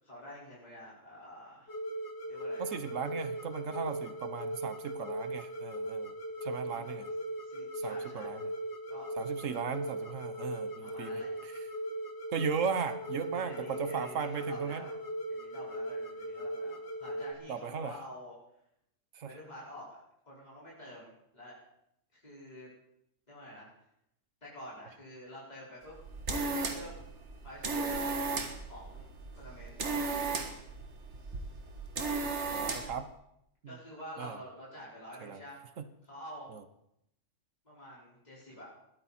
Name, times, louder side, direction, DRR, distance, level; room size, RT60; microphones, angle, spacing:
voice 1, 0.0-1.7 2.2-2.7 6.6-7.1 7.4-8.3 8.9-9.1 10.8-11.3 13.3-14.9 15.3-18.3 19.2-20.0 20.3-21.6 22.1-22.7 23.3-23.7 24.4-26.0 26.3-27.1 27.4-28.0 28.6-29.1 29.4-29.8 33.7-35.6 36.0-36.5 37.6-38.7, equal, 35° left, -7 dB, 5.1 m, -48 dB
sound 1, 1.7-17.3, right 1 dB, 65° left, 2.0 m, -39 dB
voice 2, 2.6-6.1 6.4-7.1 7.7-8.4 9.2-11.7 12.3-14.8 17.5-17.9 19.1-19.3 32.5-33.1 34.2-34.4 35.2-35.4 35.8-35.9 36.5-36.6, right 6 dB, 85° right, 11 dB, 1.4 m, -37 dB
sound 2, 25.9-33.0, right 3 dB, 65° right, 1.8 m, -35 dB
20.5 x 14.0 x 4.3 m, 0.79 s
omnidirectional pair, 1.3 m